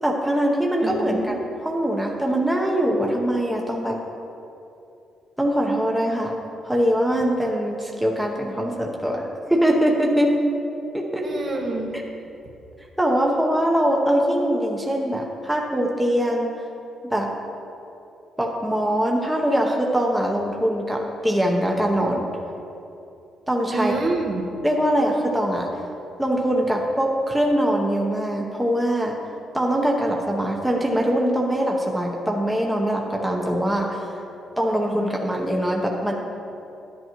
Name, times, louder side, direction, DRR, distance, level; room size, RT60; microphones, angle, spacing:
voice 1, 0.0-1.3 1.6-4.0 5.4-6.3 6.6-10.4 10.9-11.3 11.9-12.0 13.0-16.5 17.1-17.3 18.4-22.3 23.5-23.9 24.6-25.7 26.2-29.2 29.5-34.1 34.6-36.1, equal, 5° right, -1 dB, 0.9 m, -22 dB
voice 2, 0.8-1.3 11.2-12.0 23.7-24.4, right 2 dB, 50° right, 0 dB, 1.3 m, -27 dB
10.5 x 10.5 x 3.1 m, 2.7 s
cardioid pair, 110°, 0 cm